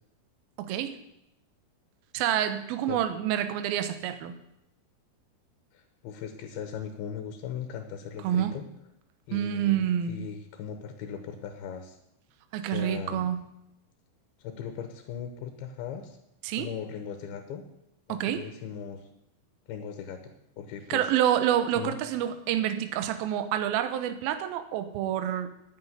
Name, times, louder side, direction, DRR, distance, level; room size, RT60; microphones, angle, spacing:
voice 1, 0.6-1.0 2.1-4.4 8.2-8.5 9.3-10.3 12.5-13.4 16.4-16.7 18.1-18.4 20.9-25.5, right 11 dB, 75° right, 9 dB, 2.7 m, -28 dB
voice 2, 5.7-8.7 9.3-9.8 10.1-12.0 12.6-13.3 14.4-16.2 16.6-17.6 18.1-19.1 19.7-20.2 20.6-21.1 21.8-22.0, left 7 dB, 75° left, 6 dB, 2.9 m, -38 dB
9.8 x 9.5 x 9.6 m, 0.84 s
omnidirectional pair, 4.6 m